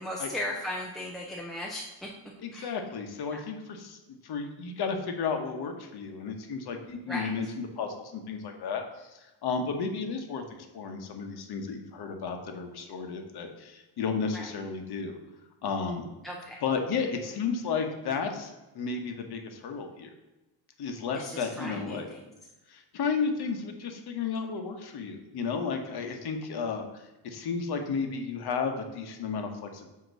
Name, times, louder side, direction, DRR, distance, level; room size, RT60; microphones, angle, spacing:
voice 1, 0.0-2.1 2.5-2.7 3.3-3.4 7.1-7.3 14.3-14.5 16.2-16.6 21.1-22.2, left 1 dB, ahead, -2 dB, 0.4 m, -37 dB
voice 2, 2.4-15.2 15.6-16.0 16.6-20.1 20.8-22.1 22.7-29.9, left 5 dB, 50° left, 4 dB, 1.0 m, -33 dB
7.8 x 3.0 x 6.2 m, 1.1 s
cardioid pair, 170°, 49 cm